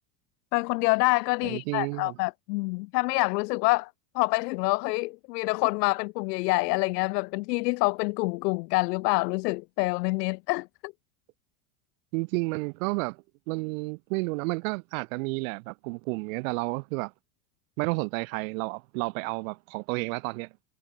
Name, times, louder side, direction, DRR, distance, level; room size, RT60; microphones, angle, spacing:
voice 1, 0.5-10.9, left 25 dB, 85° left, 0.6 m, -27 dB
voice 2, 1.4-2.2 12.1-17.1 17.8-20.5, right 28 dB, 60° right, 0.8 m, -31 dB
supercardioid pair, 170°, 47 cm